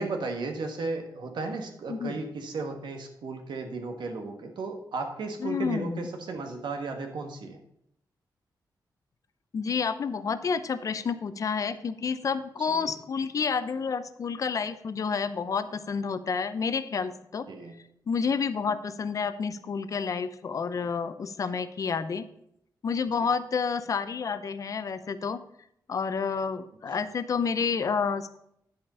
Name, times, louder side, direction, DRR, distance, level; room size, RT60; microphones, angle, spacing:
voice 1, 0.0-7.6 12.7-12.9 17.5-17.7 23.2-23.3, right 3 dB, 80° right, 5 dB, 1.5 m, -35 dB
voice 2, 1.9-2.2 5.4-6.1 9.5-17.5 18.1-22.2 22.8-25.4 25.9-28.4, left 5 dB, 45° left, 12 dB, 0.6 m, -29 dB
11.0 x 5.1 x 5.5 m, 0.74 s
wide cardioid pair, 160°, 8 cm